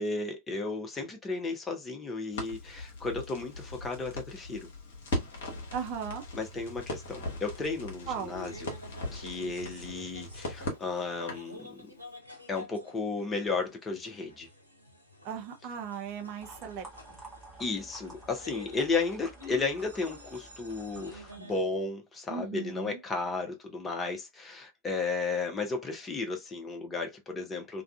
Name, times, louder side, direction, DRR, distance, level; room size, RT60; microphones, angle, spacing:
voice 1, 0.0-4.7 6.3-8.7 9.1-11.9 12.5-14.5 17.6-27.8, left 3 dB, 15° left, 0.7 m, -34 dB
Crackle, 2.3-11.5, left 1 dB, 60° left, 0.9 m, -39 dB
voice 2, 5.7-6.2 8.1-8.3 15.2-16.9 22.3-23.0, right 7 dB, 45° right, 0.6 m, -37 dB
sound 1, 7.3-21.6, left 2 dB, 90° left, 0.6 m, -50 dB
sound 2, 16.4-21.4, right 2 dB, 10° right, 1.1 m, -50 dB
2.4 x 2.3 x 2.3 m
figure-of-eight pair, 90°, 0 cm